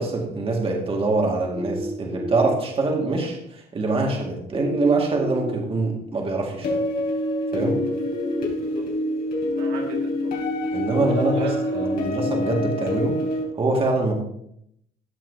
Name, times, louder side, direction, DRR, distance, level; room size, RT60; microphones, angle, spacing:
voice 1, 0.0-6.8 7.5-7.8 10.7-13.1 13.5-14.1, right 3 dB, 35° right, 0 dB, 2.0 m, -24 dB
sound 1, 1.5-2.5 4.5-5.5 7.5-8.5, right 1 dB, 5° right, 2.1 m, -30 dB
sound 2, 6.6-13.4, left 1 dB, 60° left, 3.5 m, -26 dB
voice 2, 8.5-8.9 9.6-10.4 10.9-12.0, right 3 dB, 85° right, 0 dB, 2.1 m, -35 dB
14.5 x 6.0 x 2.8 m, 0.74 s
cardioid pair, 110°, 17 cm